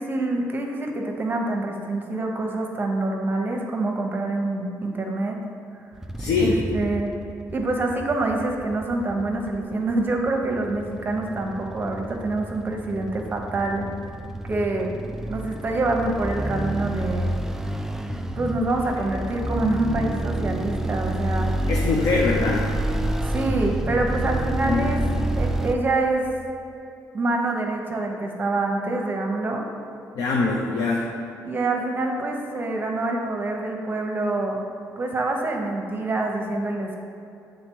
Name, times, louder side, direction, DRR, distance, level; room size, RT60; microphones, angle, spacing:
voice 1, 0.0-5.4 5.7-5.8 6.4-7.1 7.5-13.9 14.5-14.9 15.3-17.3 18.3-21.6 23.2-25.0 25.4-26.3 27.1-29.7 31.4-34.6 35.0-37.0, right 2 dB, 30° right, 2 dB, 0.9 m, -26 dB
sound 1, 6.0-25.8, right 1 dB, 5° right, 0.3 m, -29 dB
voice 2, 6.2-6.6 21.7-22.7 24.6-24.9 30.2-31.1, left 4 dB, 75° left, -2 dB, 0.7 m, -23 dB
7.3 x 3.8 x 4.6 m, 2.7 s
cardioid pair, 110°, 6 cm